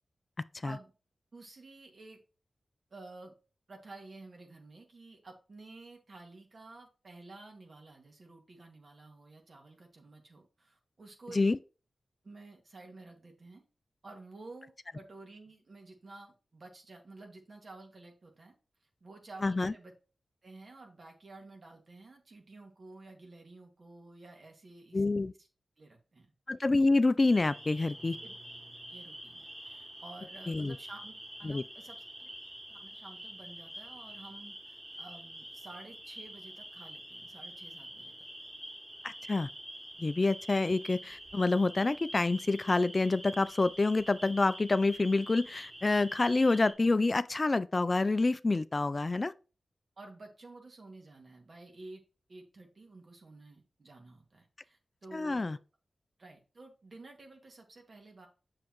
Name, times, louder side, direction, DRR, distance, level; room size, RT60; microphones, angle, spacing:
voice 1, 1.3-2.2 2.9-3.4 3.7-11.5 12.2-13.7 14.0-18.6 18.8-19.9 20.4-25.0 25.4-25.5 25.8-26.3 28.2-28.3 28.9-32.3 32.7-38.3 50.0-52.0 52.3-55.6 56.2-58.3, right 2 dB, 60° right, 2.0 m, -52 dB
voice 2, 19.4-19.7 24.9-25.3 26.5-28.2 30.5-30.8 31.4-31.6 39.0-39.5 40.0-49.3 55.1-55.6, left 3 dB, 40° left, 0.3 m, -27 dB
sound 1, 27.2-46.7, equal, 35° right, 3.2 m, -47 dB
7.7 x 6.4 x 3.0 m
cardioid pair, 50°, 0 cm